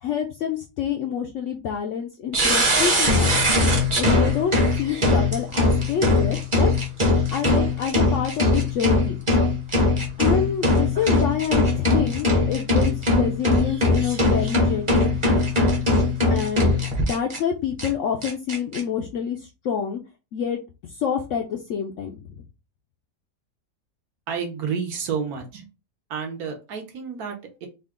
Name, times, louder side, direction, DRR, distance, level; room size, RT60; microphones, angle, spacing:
voice 1, 0.0-3.4 4.0-6.7 7.3-9.2 10.2-15.4 16.3-16.7 17.0-20.0 20.3-22.4, left 8 dB, 70° left, 3 dB, 0.7 m, -27 dB
sound 1, 2.3-17.4 17.8-17.9 18.2-18.8, left 2 dB, 25° right, 0.8 m, -20 dB
voice 2, 24.3-25.7 26.1-27.7, right 6 dB, 70° right, 4 dB, 1.3 m, -30 dB
3.7 x 2.3 x 3.5 m, 0.29 s
omnidirectional pair, 1.7 m